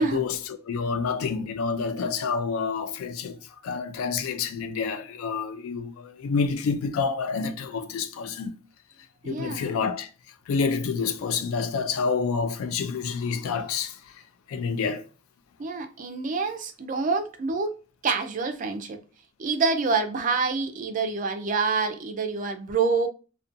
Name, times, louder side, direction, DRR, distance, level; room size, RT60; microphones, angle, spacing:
voice 1, 0.0-3.4 3.6-8.5 9.2-10.1 10.5-14.2 14.5-15.0, left 5 dB, 85° left, 0.3 m, -28 dB
voice 2, 9.2-9.7 15.6-17.8 18.0-19.0 19.4-23.1, right 4 dB, 40° right, 0.3 m, -27 dB
2.6 x 2.2 x 2.4 m
head